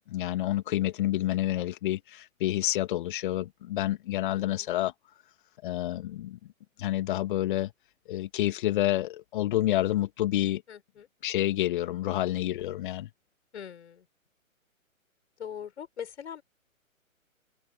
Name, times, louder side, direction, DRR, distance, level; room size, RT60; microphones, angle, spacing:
voice 1, 0.0-4.9 5.6-6.4 6.8-7.7 8.1-10.6 11.2-13.1, left 14 dB, 35° left, 2.1 m, -28 dB
voice 2, 4.3-4.7 10.7-11.1 13.5-14.1 15.4-16.4, left 8 dB, 55° left, 7.2 m, -42 dB
open air
figure-of-eight pair, 125°, 41 cm